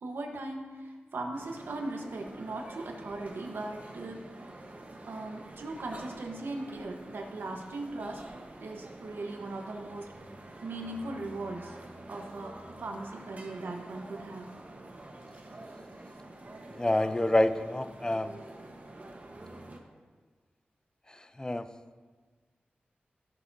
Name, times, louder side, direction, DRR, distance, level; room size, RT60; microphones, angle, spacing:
voice 1, 0.0-4.3 4.8-8.2 8.6-10.1 10.6-11.8 12.1-14.5, right 2 dB, 85° right, 2 dB, 1.3 m, -39 dB
sound 1, 1.3-19.8, right 2 dB, 45° right, 1.3 m, -47 dB
voice 2, 16.8-18.3 21.4-21.7, left 1 dB, 20° left, 11 dB, 0.5 m, -27 dB
17.5 x 7.1 x 2.8 m, 1.4 s
wide cardioid pair, 65°, 4 cm